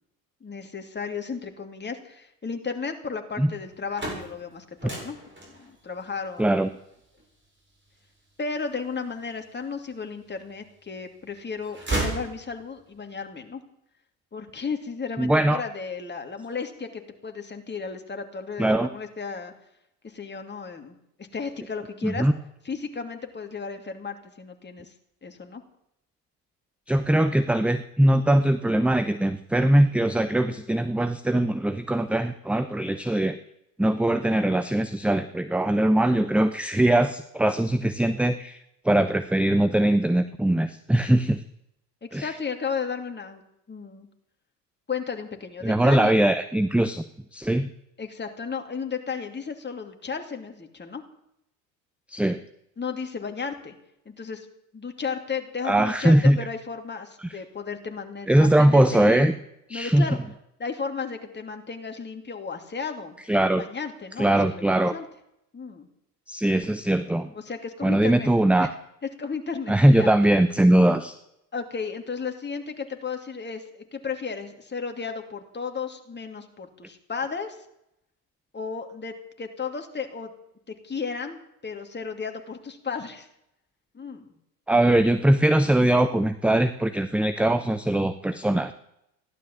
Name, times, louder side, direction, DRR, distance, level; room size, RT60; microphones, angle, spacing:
voice 1, 0.4-5.2 5.5-6.5 8.4-13.6 14.3-19.5 20.0-22.3 22.6-24.9 25.2-25.6 42.0-43.4 43.7-44.1 44.9-46.1 48.0-51.0 52.8-53.7 54.0-54.5 54.7-59.3 59.7-60.2 60.6-63.2 63.6-65.0 65.5-65.9 67.3-68.3 68.6-68.7 69.2-70.1 71.5-77.7 78.5-80.3 80.7-83.3 83.9-84.3, left 5 dB, 20° left, 5 dB, 2.8 m, -34 dB
sound 1, 3.6-9.6 10.2-11.0 11.3-12.9, right 2 dB, 25° right, 7.8 m, -35 dB
voice 2, 6.4-6.7 15.2-15.6 18.6-18.9 22.0-22.3 26.9-33.4 33.8-38.6 38.8-41.4 42.1-42.3 45.6-47.0 47.3-47.7 52.1-52.4 55.6-56.4 57.2-57.3 58.3-59.3 59.7-60.1 63.3-63.6 64.2-64.9 66.3-67.3 67.8-68.7 69.7-71.1 84.7-88.7, right 1 dB, ahead, 11 dB, 0.7 m, -21 dB
16.0 x 11.5 x 7.4 m, 0.80 s
hypercardioid pair, 70°, 49 cm